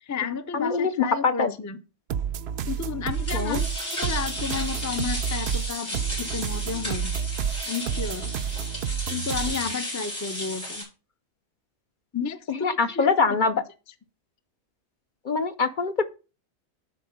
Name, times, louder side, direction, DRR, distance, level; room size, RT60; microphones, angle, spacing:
voice 1, 0.0-1.8 2.6-7.1 7.7-8.3 9.1-10.8 12.1-13.4, left 6 dB, 20° left, 0.5 m, -32 dB
voice 2, 0.5-1.5 3.3-3.6 12.5-13.5 15.2-16.0, left 4 dB, 50° left, 0.7 m, -24 dB
sound 1, 2.1-9.7, right 8 dB, 70° right, 0.8 m, -30 dB
sound 2, 3.1-10.8, left 1 dB, 85° left, 5.8 m, -34 dB
11.0 x 4.4 x 5.3 m
omnidirectional pair, 1.1 m